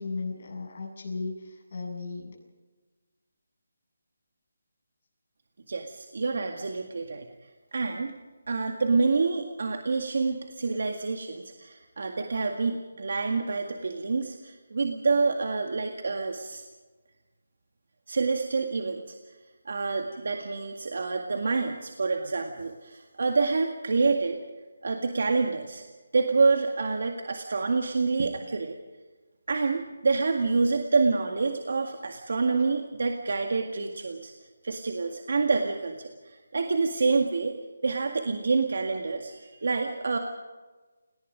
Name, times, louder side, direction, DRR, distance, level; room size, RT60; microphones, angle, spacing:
voice 1, 0.0-2.4, left 3 dB, 40° left, -1 dB, 7.9 m, -35 dB
voice 2, 5.7-7.3 7.7-8.2 8.5-16.6 18.1-19.2 19.7-24.4 24.8-25.9 26.1-28.8 29.5-34.3 34.6-37.6 37.8-40.2, right 4 dB, 55° right, 4 dB, 1.9 m, -27 dB
28.5 x 19.0 x 5.2 m, 1.3 s
hypercardioid pair, 175°, 0 cm